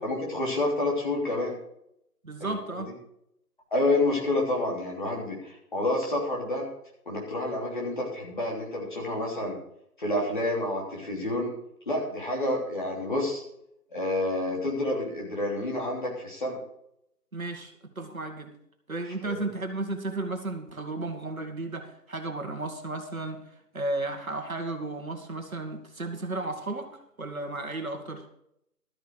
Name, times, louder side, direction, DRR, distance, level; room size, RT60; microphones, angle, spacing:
voice 1, 0.0-1.5 2.4-2.8 3.7-6.7 7.0-9.6 10.0-11.5 11.8-13.4 13.9-16.6 19.2-19.5, left 1 dB, 30° left, -2 dB, 3.2 m, -29 dB
voice 2, 2.2-2.9 17.3-18.5 18.9-23.4 23.7-26.9 27.2-28.3, right 2 dB, 60° right, 5 dB, 2.1 m, -34 dB
13.0 x 10.0 x 4.6 m, 0.77 s
figure-of-eight pair, 170°, 47 cm